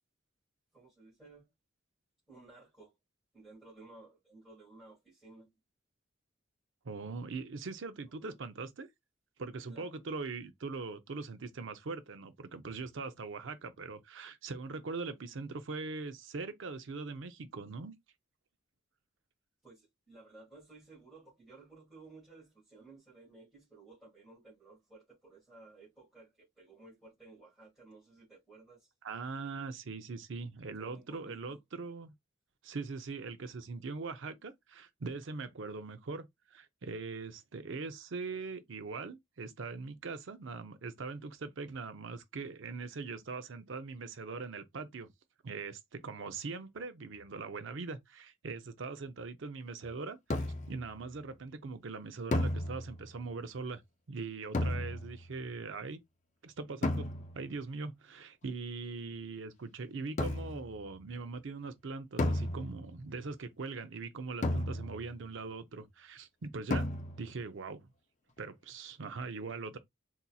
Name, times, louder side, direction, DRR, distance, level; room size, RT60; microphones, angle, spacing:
voice 1, 0.7-1.5 2.3-3.0 3.3-5.5 8.1-8.4 9.7-9.9 19.6-28.9 30.8-31.6, right 3 dB, ahead, 1.8 m, -56 dB
voice 2, 6.8-8.9 9.4-18.0 29.0-32.1 32.6-45.1 45.4-53.8 54.1-56.0 56.4-57.1 57.3-66.9 67.2-67.9 68.4-69.8, right 4 dB, 70° right, 0.5 m, -41 dB
sound 1, 50.3-50.8 52.3-53.2 54.5-55.3 56.8-57.5 60.2-60.7 62.2-63.0 64.4-65.2 66.7-67.4, left 1 dB, 35° left, 0.5 m, -33 dB
4.0 x 2.8 x 2.3 m
head